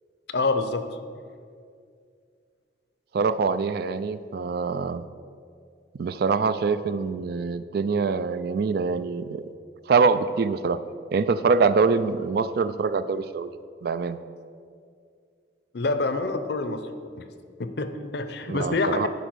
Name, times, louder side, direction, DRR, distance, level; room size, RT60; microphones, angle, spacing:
voice 1, 0.3-0.9 15.7-16.9 17.2-17.3 17.6-19.1, left 3 dB, 65° left, 9 dB, 0.6 m, -26 dB
voice 2, 3.1-5.0 6.0-9.5 9.9-10.8 11.1-13.5 13.8-14.2 18.5-19.1, right 4 dB, 55° right, 13 dB, 0.3 m, -24 dB
10.0 x 5.1 x 6.2 m, 2.3 s
head